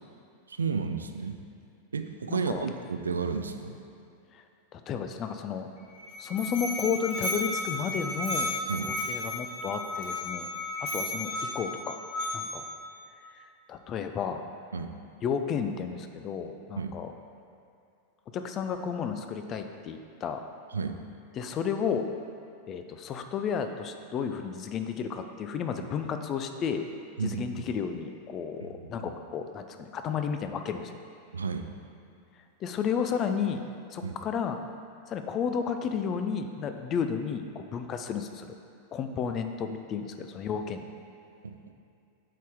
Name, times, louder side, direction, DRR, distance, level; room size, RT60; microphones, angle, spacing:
voice 1, 0.5-1.4 1.9-3.8 8.7-8.9 14.7-14.9 16.8-16.9 20.7-21.0 27.2-27.4 28.6-28.7 29.0-29.1 31.3-31.7 34.0-34.1 41.4-41.6, right 5 dB, 75° right, 7 dB, 0.4 m, -32 dB
voice 2, 2.3-2.7 4.3-4.4 4.7-5.7 6.2-8.5 8.8-10.5 10.8-12.0 12.3-12.6 13.4-14.4 15.2-17.1 18.3-20.4 21.3-22.1 22.7-26.8 27.2-31.0 32.6-33.6 33.9-34.6 35.1-38.5 38.9-40.9, left 7 dB, 30° left, 7 dB, 0.5 m, -32 dB
Musical instrument, 5.8-12.8, left 2 dB, 45° left, 1.4 m, -34 dB
8.0 x 4.2 x 4.7 m, 2.5 s
figure-of-eight pair, 90°, 0 cm